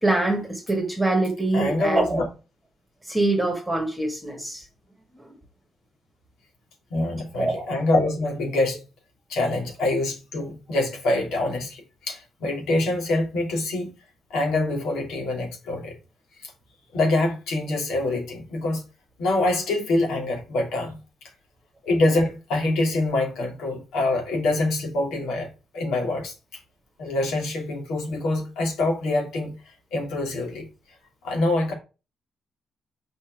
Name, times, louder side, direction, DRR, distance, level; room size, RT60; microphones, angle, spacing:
voice 1, 0.0-2.2 3.0-4.6 5.1-5.3 7.4-7.7, right 2 dB, 5° right, 1.8 m, -24 dB
voice 2, 1.5-2.2 6.9-8.8 9.3-13.9 14.3-15.9 16.4-16.5 16.9-18.8 19.2-21.0 21.8-26.3 27.0-29.5 29.9-30.7 31.2-31.7, left 2 dB, 90° left, 2.9 m, -25 dB
7.2 x 5.0 x 4.7 m
cardioid pair, 155°, 0 cm